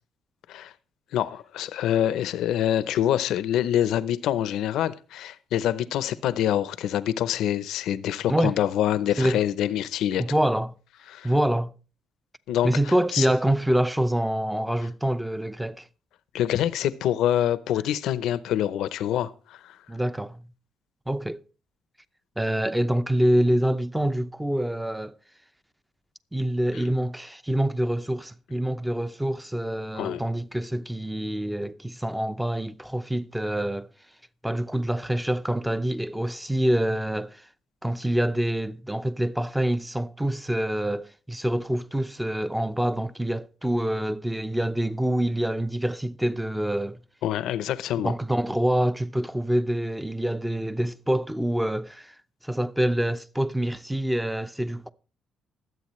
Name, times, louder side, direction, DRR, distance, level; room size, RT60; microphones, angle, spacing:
voice 1, 1.1-10.2 11.1-11.3 12.5-12.7 13.1-13.3 16.3-19.3 19.6-19.7 29.9-30.2 47.2-48.1, left 11 dB, 85° left, 0.7 m, -25 dB
voice 2, 10.2-10.7 11.2-11.7 12.6-15.9 19.9-20.4 21.1-21.4 22.4-25.1 26.3-33.9 34.4-37.4 37.8-47.0 48.0-52.1 52.4-54.9, right 1 dB, 5° right, 0.7 m, -26 dB
21.5 x 8.0 x 3.1 m
cardioid pair, 90°, 0 cm